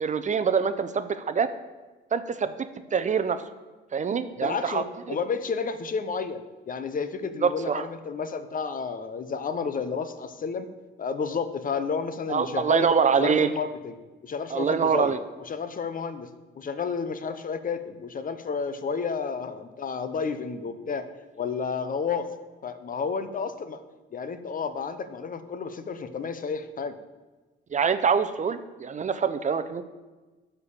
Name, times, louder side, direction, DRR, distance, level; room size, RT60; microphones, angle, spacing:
voice 1, 0.0-1.5 2.1-2.5 2.9-3.4 3.9-5.2 7.4-7.9 12.3-13.5 14.5-15.2 27.7-29.8, right 6 dB, 40° right, 11 dB, 0.6 m, -25 dB
voice 2, 4.4-10.7 11.0-12.9 13.2-14.0 14.2-16.3 16.6-21.1 21.3-22.3 22.6-23.8 24.1-27.0, left 5 dB, 45° left, 11 dB, 0.8 m, -31 dB
12.0 x 4.5 x 7.1 m, 1.2 s
cardioid pair, 90°, 20 cm